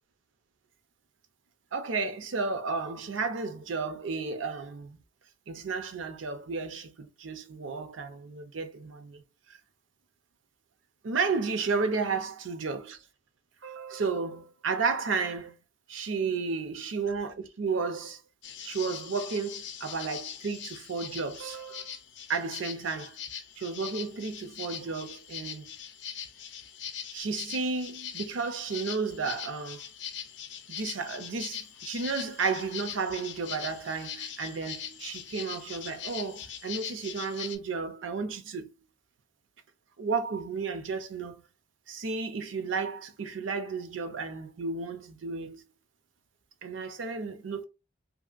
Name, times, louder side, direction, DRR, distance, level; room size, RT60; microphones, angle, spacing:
voice 1, 1.7-5.0 5.5-9.2 9.5-9.6 11.0-13.0 13.6-15.5 15.9-18.2 18.6-21.9 22.3-23.2 23.6-25.7 27.1-29.8 30.7-38.7 40.0-41.4 41.9-45.6 46.6-47.6, right 4 dB, 85° right, 0.5 m, -33 dB
sound 1, 18.4-37.6, left 8 dB, 70° left, 0.5 m, -41 dB
2.8 x 2.7 x 2.4 m
head